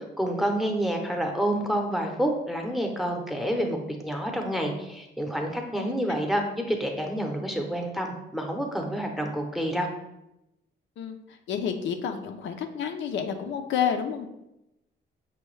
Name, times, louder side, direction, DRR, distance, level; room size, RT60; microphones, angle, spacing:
voice 1, 0.0-3.8 4.0-9.9, equal, ahead, 2 dB, 0.7 m, -28 dB
voice 2, 11.0-14.3, left 7 dB, 70° left, 5 dB, 0.5 m, -30 dB
5.6 x 2.2 x 3.1 m, 0.88 s
cardioid pair, 90°, 20 cm